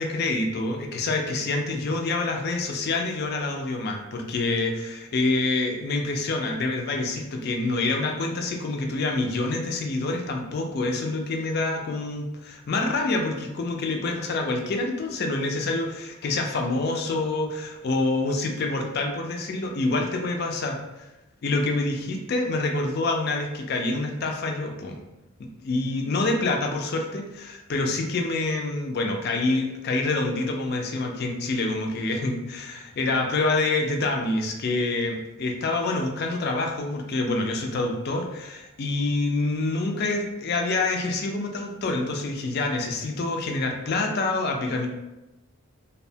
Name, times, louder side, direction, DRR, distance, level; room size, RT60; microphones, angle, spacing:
voice 1, 0.0-21.1 21.4-25.0 25.6-44.9, left 2 dB, 45° left, 2 dB, 0.3 m, -27 dB
2.6 x 2.1 x 2.7 m, 0.98 s
head